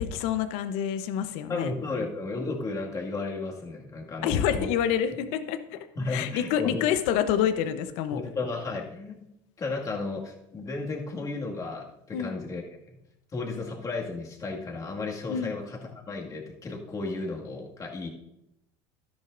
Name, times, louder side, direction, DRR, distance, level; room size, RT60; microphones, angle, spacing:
voice 1, 0.0-1.7 4.2-5.8 6.1-8.2 12.1-12.4 15.3-15.5, left 9 dB, 70° left, 10 dB, 0.9 m, -27 dB
voice 2, 1.5-4.7 6.0-6.8 8.1-9.3 9.6-12.6 12.9-13.0 13.3-18.1, left 3 dB, 30° left, 0 dB, 2.1 m, -34 dB
12.5 x 10.5 x 2.6 m, 0.83 s
supercardioid pair, 95°, 12 cm